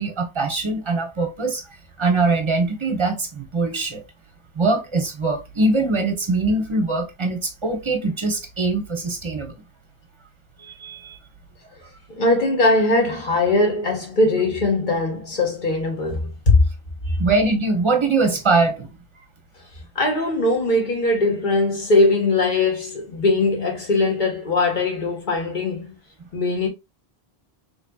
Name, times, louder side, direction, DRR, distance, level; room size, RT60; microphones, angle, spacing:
voice 1, 0.0-1.6 2.0-4.0 4.5-9.6 10.6-11.2 17.1-18.9, right 3 dB, 30° right, 0.9 m, -22 dB
voice 2, 12.2-16.6 19.9-25.9 26.3-26.7, left 2 dB, 50° left, 1.4 m, -20 dB
4.1 x 3.2 x 2.3 m
omnidirectional pair, 1.0 m